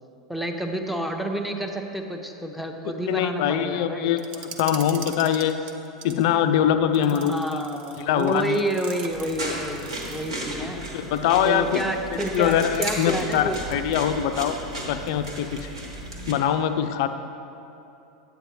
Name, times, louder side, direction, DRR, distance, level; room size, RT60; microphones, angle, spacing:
voice 1, 0.3-4.1 7.0-10.8 11.4-13.6, right 1 dB, ahead, 4 dB, 0.7 m, -29 dB
voice 2, 3.1-5.6 6.0-7.6 8.0-8.6 10.6-10.7 10.9-11.7 12.3-14.6 14.8-15.7 16.3-17.1, left 9 dB, 55° left, 9 dB, 0.4 m, -23 dB
sound 1, 4.2-6.3 6.9-10.5 12.1-14.2 14.4-14.5 15.1-15.5, right 6 dB, 45° right, 0.6 m, -42 dB
sound 2, 9.1-16.3, right 1 dB, 75° right, 1.5 m, -34 dB
8.8 x 8.6 x 3.1 m, 2.8 s
figure-of-eight pair, 85°, 3 cm